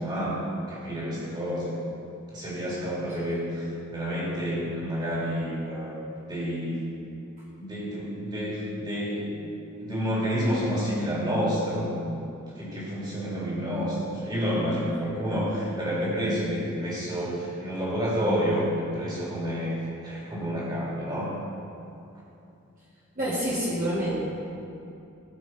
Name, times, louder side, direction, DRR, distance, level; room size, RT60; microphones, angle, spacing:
voice 1, 0.0-1.7 2.3-5.9 6.3-6.8 7.6-9.4 9.8-12.2 12.6-19.7 20.0-21.4, equal, 20° right, -7 dB, 2.7 m, -29 dB
voice 2, 23.2-24.1, right 1 dB, 35° right, -9 dB, 1.8 m, -27 dB
16.5 x 6.0 x 4.4 m, 2.7 s
head